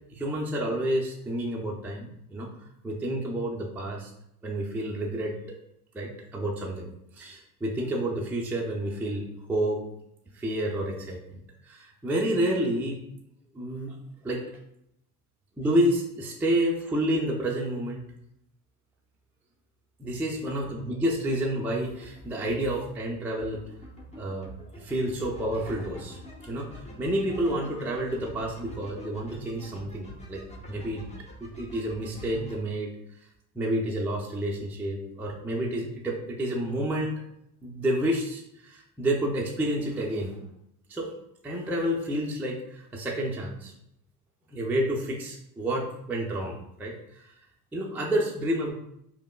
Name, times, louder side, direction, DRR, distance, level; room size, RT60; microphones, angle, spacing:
voice 1, 0.1-2.5 2.8-4.1 4.4-5.6 5.9-9.8 10.3-13.0 13.5-14.0 14.2-14.4 15.6-18.1 20.0-23.6 24.1-24.5 24.7-26.2 26.4-31.1 31.4-33.2 33.5-37.2 37.6-40.4 40.9-41.1 41.4-43.7 44.5-47.3 47.7-48.7, right 1 dB, 5° right, -2 dB, 0.5 m, -29 dB
sound 1, 21.9-32.6, equal, 15° left, 0.9 m, -46 dB
4.9 x 2.0 x 2.2 m, 0.78 s
hypercardioid pair, 65°, 46 cm